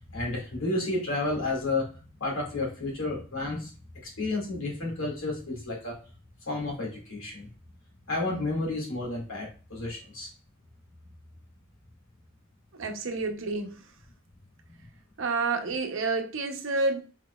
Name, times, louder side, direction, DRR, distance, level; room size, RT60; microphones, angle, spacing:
voice 1, 0.0-1.9 2.2-3.7 4.0-6.0 6.5-7.5 8.1-10.3, left 2 dB, 75° left, 2.0 m, -31 dB
voice 2, 12.8-13.8 15.2-17.0, right 3 dB, 65° right, 0.8 m, -29 dB
4.5 x 4.1 x 2.3 m
head